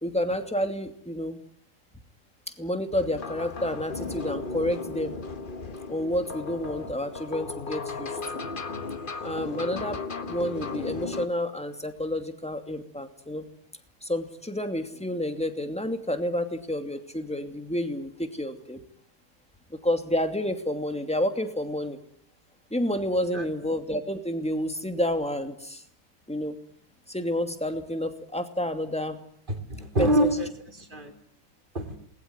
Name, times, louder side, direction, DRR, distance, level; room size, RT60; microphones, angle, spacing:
voice 1, 0.0-1.4 2.5-5.2 5.9-8.4 9.2-10.0 10.2-13.5 14.0-18.8 19.7-22.0 22.7-25.8 26.3-26.6 27.1-29.2 30.0-30.3, left 1 dB, 5° left, 7 dB, 2.5 m, -29 dB
sound 1, 2.9-11.3, left 4 dB, 35° left, 1.4 m, -36 dB
voice 2, 29.5-31.1 31.7-32.0, right 1 dB, 35° right, 5 dB, 3.7 m, -26 dB
27.5 x 21.0 x 9.7 m, 0.65 s
omnidirectional pair, 1.6 m